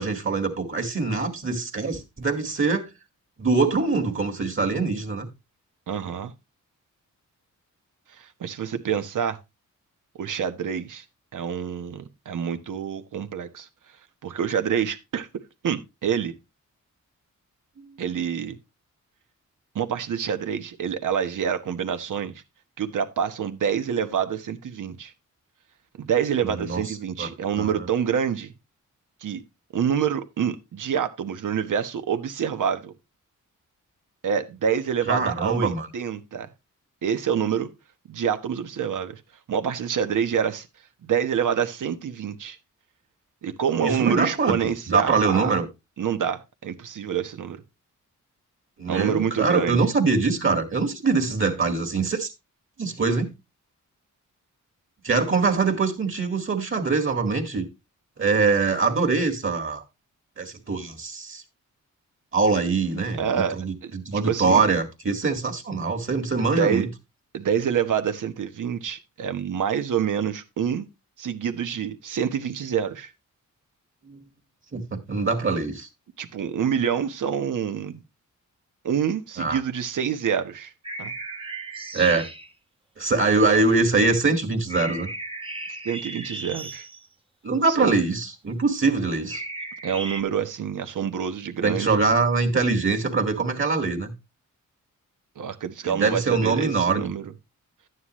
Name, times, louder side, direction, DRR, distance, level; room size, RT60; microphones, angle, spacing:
voice 1, 0.0-2.9 3.4-5.3 26.4-26.8 27.2-27.3 27.6-27.7 35.1-35.9 43.8-44.6 44.9-45.7 48.8-52.3 52.8-53.3 55.0-57.7 58.2-59.8 60.4-61.4 62.3-66.9 74.1-74.2 74.7-75.9 79.4-79.6 81.9-82.3 83.0-85.1 87.4-89.4 91.6-94.1 95.8-97.1, right 4 dB, 40° right, 2.0 m, -23 dB
voice 2, 5.9-6.3 8.1-9.4 10.2-11.0 11.3-13.7 14.2-15.3 15.6-16.3 18.0-18.6 19.7-22.4 22.8-25.1 26.0-28.5 29.2-29.4 29.7-32.9 34.2-36.5 37.0-37.7 38.1-39.2 39.5-40.7 41.0-42.6 43.4-45.6 46.0-47.6 48.9-49.9 63.2-64.6 66.4-66.9 67.3-70.9 71.2-73.1 76.2-78.0 78.8-80.7 81.0-81.1 85.8-86.9 87.8-87.9 89.8-91.9 95.4-97.3, right 8 dB, 75° right, 1.2 m, -27 dB
sound 1, 80.8-82.5 84.7-87.1 89.3-90.2, right 2 dB, 15° right, 1.0 m, -35 dB
11.5 x 9.4 x 3.1 m
wide cardioid pair, 105°, 31 cm